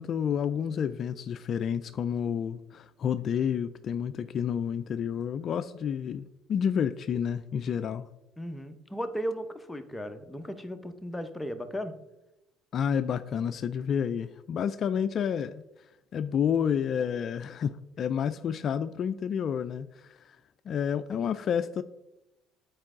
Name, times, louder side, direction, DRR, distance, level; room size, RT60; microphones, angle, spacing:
voice 1, 0.0-6.2 6.5-8.1 12.7-15.6 16.1-20.4 20.7-21.8, left 8 dB, 55° left, 13 dB, 0.3 m, -30 dB
voice 2, 8.4-11.9, equal, 10° left, 8 dB, 0.9 m, -36 dB
8.7 x 4.6 x 3.7 m, 0.93 s
supercardioid pair, 70°, 0 cm